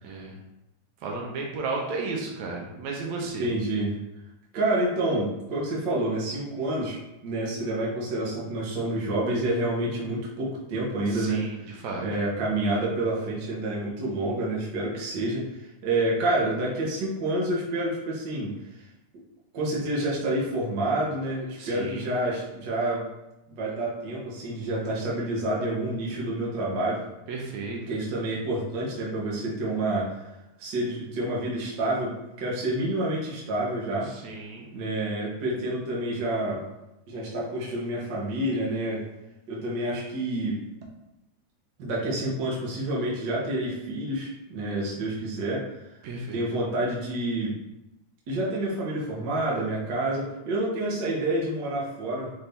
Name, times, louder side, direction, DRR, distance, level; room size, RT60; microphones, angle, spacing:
voice 1, 0.0-0.4 1.0-3.5 11.1-12.0 21.6-22.1 27.3-27.8 34.1-34.7 46.0-46.4, right 3 dB, 75° right, 0 dB, 2.0 m, -34 dB
voice 2, 3.4-3.9 4.5-7.0 7.2-18.6 19.5-23.0 23.5-27.0 27.9-30.2 30.6-34.1 34.7-36.7 37.1-39.1 39.5-40.6 41.8-45.7 46.3-47.5 48.3-52.3, right 1 dB, 60° right, -5 dB, 1.2 m, -28 dB
5.8 x 2.6 x 3.4 m, 0.94 s
omnidirectional pair, 3.4 m